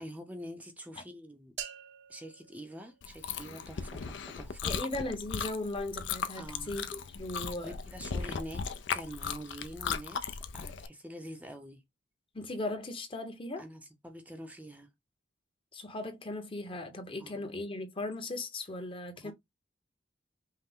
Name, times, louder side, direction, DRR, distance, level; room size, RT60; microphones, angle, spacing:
voice 1, 0.0-1.6 2.1-4.8 6.3-6.7 7.6-8.7 8.9-11.8 13.6-14.9 17.2-17.5 19.1-19.3, equal, 10° right, 0.6 m, -46 dB
sound 1, 1.6-3.6, right 9 dB, 65° right, 0.7 m, -46 dB
Chewing mastication, 3.0-10.9, left 6 dB, 65° left, 0.5 m, -37 dB
voice 2, 4.6-7.7 12.3-13.6 15.7-19.3, left 2 dB, 30° left, 0.9 m, -38 dB
5.6 x 2.1 x 3.5 m
head